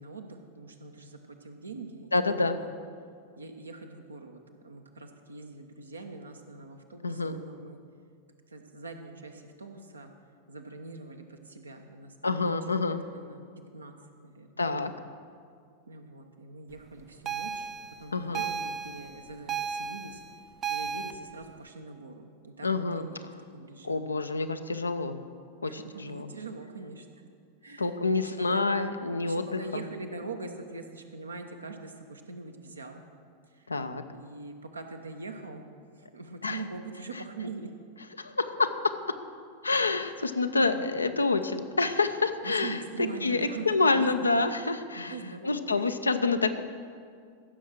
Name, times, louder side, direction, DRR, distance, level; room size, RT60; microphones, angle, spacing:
voice 1, 0.0-2.7 3.4-7.8 8.5-10.1 10.5-12.6 12.9-13.4 13.7-13.9 14.2-14.6 15.9-17.7 18.0-20.2 20.7-24.1 25.7-27.1 27.6-28.6 29.2-33.0 33.5-33.7 34.1-35.6 36.0-37.7 40.5-40.9 42.4-44.3 45.0-45.8, right 3 dB, 80° right, 4 dB, 1.0 m, -43 dB
voice 2, 2.1-2.6 7.0-7.4 12.2-13.0 14.6-14.9 18.1-18.5 22.6-23.1 23.8-25.2 25.6-26.3 27.8-29.8 33.7-34.0 36.4-36.6 38.2-38.7 39.6-42.8 43.2-45.1 45.4-46.6, left 3 dB, 80° left, 9 dB, 0.6 m, -27 dB
sound 1, 17.3-21.1, right 7 dB, 25° right, 0.5 m, -34 dB
15.5 x 6.4 x 6.0 m, 2.2 s
figure-of-eight pair, 90°, 0 cm